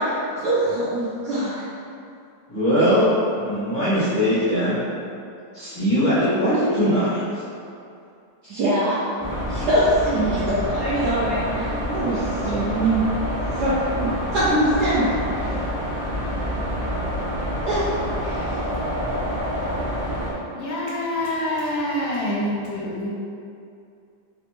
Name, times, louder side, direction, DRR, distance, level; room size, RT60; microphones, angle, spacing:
voice 1, 0.4-1.6 8.4-9.0 9.5-13.0 13.6-13.8 14.0-15.2 17.7-17.9, right 1 dB, 75° right, -10 dB, 0.9 m, -23 dB
voice 2, 2.5-3.1 3.4-4.8 5.5-7.4, equal, 40° left, -14 dB, 0.6 m, -20 dB
sound 1, 9.2-20.3, equal, 20° right, 0.7 m, -27 dB
voice 3, 20.6-23.1, left 1 dB, 75° left, -5 dB, 1.3 m, -26 dB
3.3 x 3.1 x 3.0 m, 2.5 s
omnidirectional pair, 2.4 m